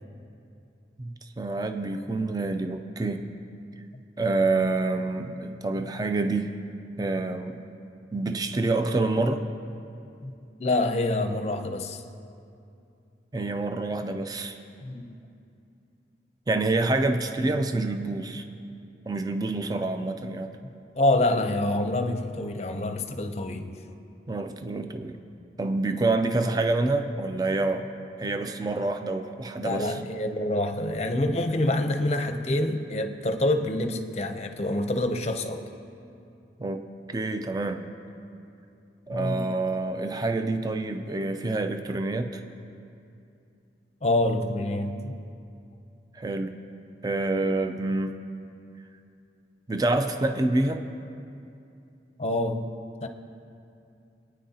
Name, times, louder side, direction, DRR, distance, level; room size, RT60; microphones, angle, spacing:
voice 1, 1.0-3.3 4.2-6.5 7.0-7.6 8.1-9.4 13.3-14.6 16.5-18.4 19.1-20.6 24.3-25.2 25.6-27.9 28.2-30.0 36.6-36.8 37.1-37.9 39.1-42.4 46.1-46.6 47.0-48.2 49.7-50.8, right 2 dB, 20° right, 7 dB, 0.5 m, -27 dB
voice 2, 10.6-12.0 14.8-15.2 20.6-24.0 29.6-35.7 39.1-39.6 44.0-45.2 52.2-53.1, left 1 dB, 35° left, 7 dB, 0.6 m, -27 dB
25.0 x 9.4 x 2.8 m, 2.6 s
head